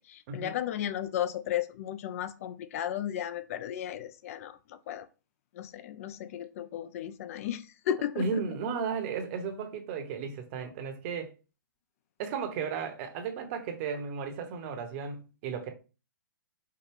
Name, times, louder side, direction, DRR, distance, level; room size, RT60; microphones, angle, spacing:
voice 1, 0.0-5.1 5.5-8.4, left 10 dB, 40° left, 0.3 m, -34 dB
voice 2, 8.2-11.3 12.2-15.7, right 6 dB, 35° right, 0.8 m, -34 dB
4.5 x 2.3 x 3.4 m
hypercardioid pair, 130°, 11 cm